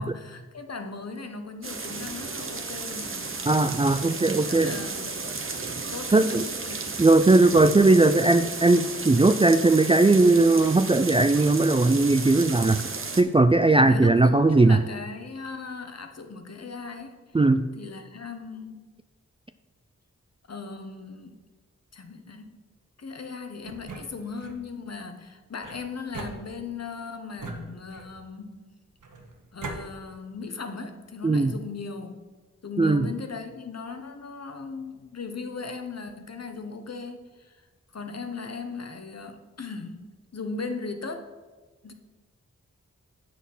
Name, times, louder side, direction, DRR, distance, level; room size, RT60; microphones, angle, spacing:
voice 1, 0.0-3.5 4.0-5.4 5.9-7.6 13.7-17.2 17.7-18.9 20.5-21.4 21.9-22.6 23.0-28.6 29.5-32.2 32.6-37.7 37.9-41.3 41.8-41.9, left 4 dB, 55° left, 7 dB, 1.0 m, -38 dB
sound 1, 1.6-13.2, right 4 dB, 45° right, 0.9 m, -34 dB
voice 2, 3.5-4.7 6.1-6.4 7.0-12.8 13.2-14.8 17.3-17.6 31.2-31.5 32.8-33.0, right 2 dB, 20° right, 10 dB, 0.3 m, -19 dB
sound 2, 23.6-24.6 25.6-26.9 27.4-28.3 29.0-29.8, right 2 dB, 80° right, 1.3 m, -40 dB
8.2 x 6.1 x 5.5 m, 1.3 s
wide cardioid pair, 60°, 30 cm